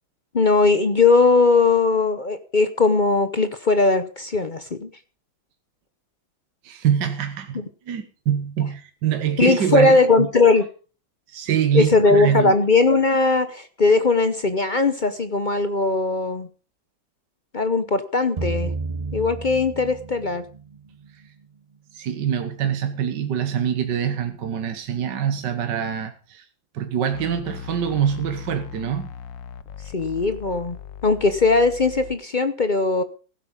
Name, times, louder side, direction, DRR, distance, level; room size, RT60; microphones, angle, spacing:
voice 1, 0.3-4.9 7.5-7.6 9.4-10.7 11.7-16.5 17.5-18.7 19.1-20.4 29.9-30.8 31.0-33.0, left 3 dB, 50° left, 0.5 m, -19 dB
voice 2, 6.6-7.6 7.9-9.9 10.2-10.3 11.3-12.5 21.9-26.4 26.7-29.1, right 9 dB, 65° right, 1.7 m, -24 dB
sound 1, 18.4-20.8, right 3 dB, 40° right, 0.5 m, -30 dB
sound 2, 27.1-32.1, left 8 dB, 70° left, 1.4 m, -39 dB
16.0 x 8.5 x 5.3 m
omnidirectional pair, 2.1 m